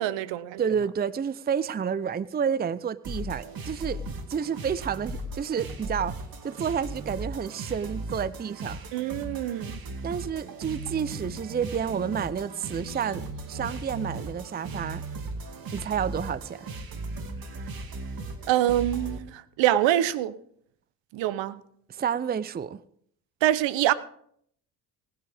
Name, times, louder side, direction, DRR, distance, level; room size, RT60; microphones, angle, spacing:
voice 1, 0.0-0.6 8.9-9.8 18.5-20.3 21.1-21.6 23.4-23.9, right 13 dB, 70° right, 0.9 m, -25 dB
voice 2, 0.6-6.2 6.4-8.9 10.0-15.0 15.7-16.7 21.9-22.8, right 7 dB, 20° right, 0.6 m, -30 dB
sound 1, 3.0-19.2, right 2 dB, 50° right, 2.3 m, -37 dB
19.5 x 9.7 x 3.5 m
hypercardioid pair, 60°, 46 cm